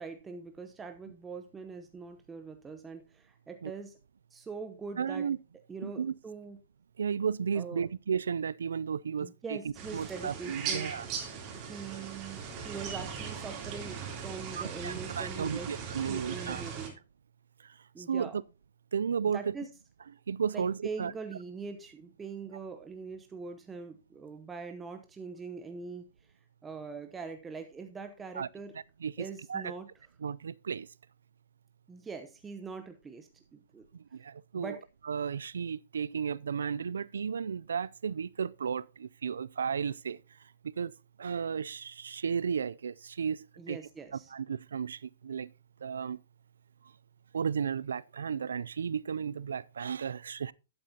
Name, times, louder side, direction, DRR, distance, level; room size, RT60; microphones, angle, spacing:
voice 1, 0.0-4.0 4.3-5.3 5.7-6.6 7.5-7.9 9.2-10.9 11.5-15.7 16.0-17.0 17.9-18.4 19.3-19.7 20.5-26.3 26.6-28.8 29.2-29.9 31.9-33.9 34.5-34.8 43.6-44.3, right 5 dB, 15° right, 0.8 m, -43 dB
voice 2, 5.0-5.4 5.8-6.1 7.0-9.6 9.9-11.1 14.6-16.6 18.1-18.4 18.9-19.5 20.3-21.1 28.4-28.5 29.0-29.1 29.5-29.7 30.2-30.9 34.1-34.8 35.1-40.2 40.8-40.9 41.2-43.8 44.3-45.5 45.8-46.2 47.3-50.5, right 7 dB, 90° right, 0.3 m, -33 dB
sound 1, 9.7-16.9, right 7 dB, 35° right, 3.1 m, -39 dB
11.0 x 8.9 x 2.8 m
hypercardioid pair, 135°, 0 cm